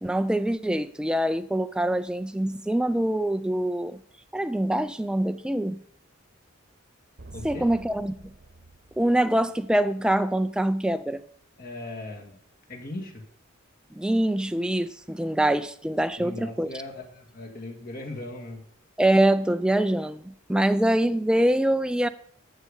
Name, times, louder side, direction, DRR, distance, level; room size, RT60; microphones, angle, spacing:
voice 1, 0.0-4.0 4.3-5.8 7.4-8.1 9.0-11.2 13.9-16.7 19.0-22.1, right 1 dB, 5° right, 0.4 m, -24 dB
sound 1, 7.2-9.9, right 2 dB, 50° right, 1.0 m, -47 dB
voice 2, 7.3-7.7 11.6-12.4 12.7-13.2 16.2-18.6, left 2 dB, 45° left, 2.0 m, -38 dB
13.5 x 6.7 x 5.0 m
head